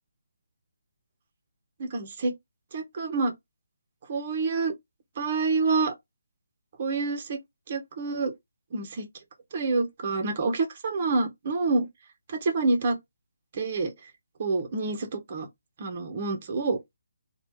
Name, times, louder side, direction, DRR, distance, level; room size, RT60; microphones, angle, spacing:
voice 1, 1.8-2.3 2.7-3.3 4.1-4.7 5.2-5.9 6.8-7.4 7.7-8.3 8.7-9.0 9.5-11.9 12.3-13.0 13.5-13.9 14.4-15.5 15.8-16.8, right 3 dB, 40° right, 0.9 m, -27 dB
3.2 x 2.4 x 3.1 m
figure-of-eight pair, 160°, 0 cm